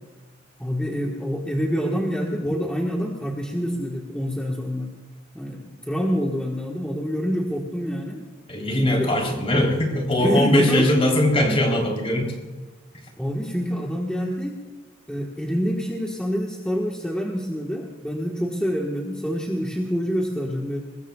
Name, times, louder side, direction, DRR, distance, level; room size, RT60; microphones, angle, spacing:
voice 1, 0.6-4.9 5.3-8.2 8.8-9.1 10.2-10.9 11.5-11.6 13.2-14.6 15.1-20.8, equal, 5° left, -2 dB, 1.4 m, -26 dB
voice 2, 8.5-12.4, left 1 dB, 30° left, 1 dB, 3.5 m, -21 dB
22.0 x 21.0 x 2.3 m, 1.3 s
head